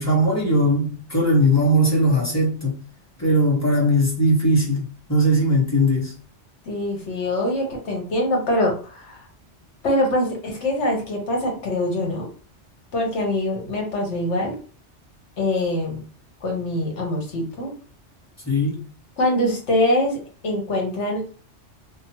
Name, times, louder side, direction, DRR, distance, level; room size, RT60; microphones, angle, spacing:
voice 1, 0.0-2.8 3.2-6.2 18.5-18.8, equal, 15° left, 0.9 m, -19 dB
voice 2, 6.7-9.2 9.8-12.3 12.9-14.6 15.4-16.0 16.4-17.7 19.2-21.2, left 1 dB, 75° left, 1.3 m, -24 dB
2.9 x 2.0 x 2.9 m
omnidirectional pair, 1.2 m